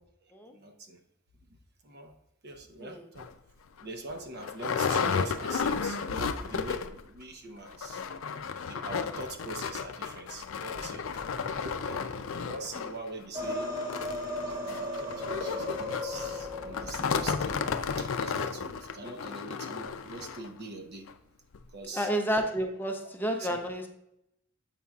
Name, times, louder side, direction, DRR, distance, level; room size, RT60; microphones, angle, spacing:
voice 1, 0.5-1.0 1.8-2.1 2.4-3.3 3.8-8.0 8.3-13.7 14.4-17.7 18.0-21.1 21.7-22.1 23.4-23.6, right 2 dB, 55° right, 4 dB, 0.8 m, -43 dB
sound 1, 3.2-3.3 3.8-3.9 4.1-7.1 7.3-7.4 7.7-20.5 21.1-21.2 21.5-21.6, left 6 dB, 85° left, 0.4 m, -33 dB
sound 2, 13.3-18.2, left 1 dB, 20° right, 1.2 m, -36 dB
voice 2, 21.9-23.9, equal, 10° left, 3 dB, 0.6 m, -30 dB
7.4 x 5.4 x 2.3 m, 0.80 s
head